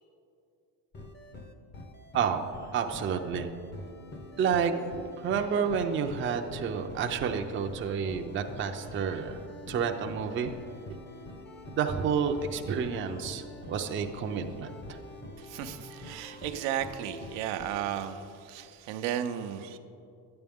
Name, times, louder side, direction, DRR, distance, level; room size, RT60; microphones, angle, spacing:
sound 1, 0.9-17.9, left 1 dB, 25° left, 0.7 m, -46 dB
voice 1, 2.1-3.5 4.4-9.4 9.7-10.5 11.8-15.0, right 6 dB, 25° right, 5 dB, 0.5 m, -30 dB
voice 2, 15.4-19.8, right 10 dB, 80° right, 7 dB, 0.7 m, -34 dB
12.0 x 9.0 x 3.6 m, 2.7 s
cardioid pair, 120°, 46 cm